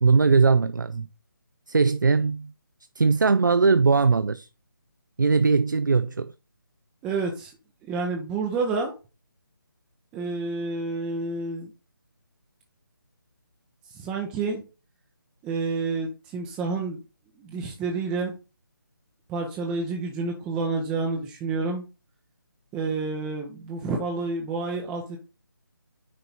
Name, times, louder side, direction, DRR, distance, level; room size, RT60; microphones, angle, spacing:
voice 1, 0.0-1.1 1.7-2.5 3.0-4.5 5.2-6.3, right 4 dB, 60° right, 0.5 m, -20 dB
voice 2, 7.0-7.5 7.8-8.9 10.1-11.7 13.9-14.6 15.4-17.0 17.4-18.3 19.3-21.8 22.7-25.2, right 3 dB, 10° right, 0.6 m, -29 dB
9.5 x 3.9 x 4.1 m
figure-of-eight pair, 150°, 12 cm